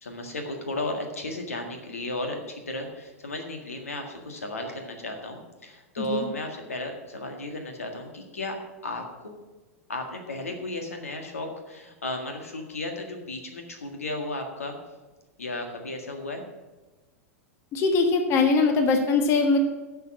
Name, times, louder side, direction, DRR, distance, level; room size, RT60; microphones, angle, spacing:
voice 1, 0.0-8.6 8.8-9.3 9.9-14.8 15.4-16.4, left 1 dB, 75° left, 4 dB, 1.7 m, -34 dB
voice 2, 17.7-19.6, left 4 dB, 35° left, 5 dB, 1.2 m, -22 dB
11.0 x 5.7 x 7.3 m, 1.2 s
figure-of-eight pair, 95°, 8 cm